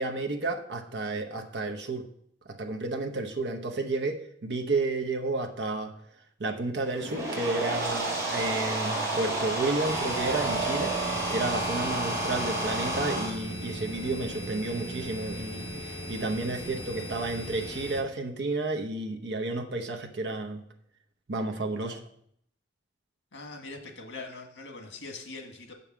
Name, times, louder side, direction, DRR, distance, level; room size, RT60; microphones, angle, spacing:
voice 1, 0.0-2.1 2.5-5.9 6.4-10.9 11.3-20.6 21.3-22.0, right 2 dB, 70° right, 3 dB, 0.9 m, -31 dB
sound 1, 6.9-13.3, right 2 dB, 15° right, 3.1 m, -30 dB
sound 2, 9.8-18.0, equal, 65° left, 1.4 m, -38 dB
voice 2, 23.3-25.7, left 3 dB, 85° left, 3 dB, 1.7 m, -42 dB
7.0 x 5.3 x 7.3 m, 0.69 s
head